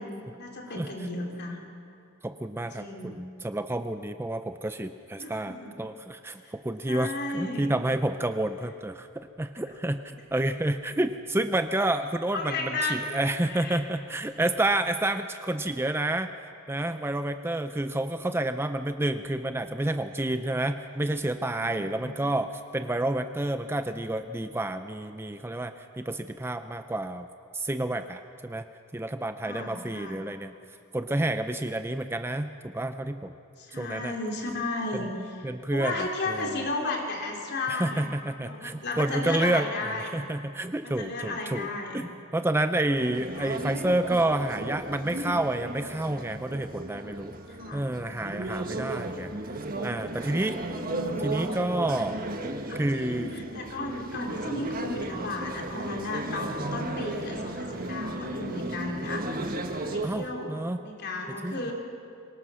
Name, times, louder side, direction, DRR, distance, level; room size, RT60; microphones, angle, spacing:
voice 1, 0.0-1.6 2.6-3.2 5.2-5.7 6.4-6.5 6.9-7.7 12.3-13.2 13.5-13.8 21.6-22.2 29.4-30.2 33.6-38.2 38.4-40.3 40.8-42.1 43.3-43.6 47.6-47.8 50.6-51.5 52.7-59.5 59.8-60.6 60.8-61.7, left 2 dB, 50° left, 1 dB, 3.4 m, -34 dB
voice 2, 2.2-16.3 16.7-27.3 27.5-28.7 28.9-30.5 30.9-33.3 33.8-34.1 35.4-36.5 37.7-41.7 41.9-47.3 47.7-50.6 51.2-52.2 52.7-53.3 57.0-57.1 60.0-60.8 61.3-61.7, right 1 dB, 10° right, 9 dB, 0.5 m, -29 dB
sound 1, 43.0-60.1, right 2 dB, 45° right, 1.5 m, -35 dB
24.5 x 19.0 x 6.3 m, 2.4 s
head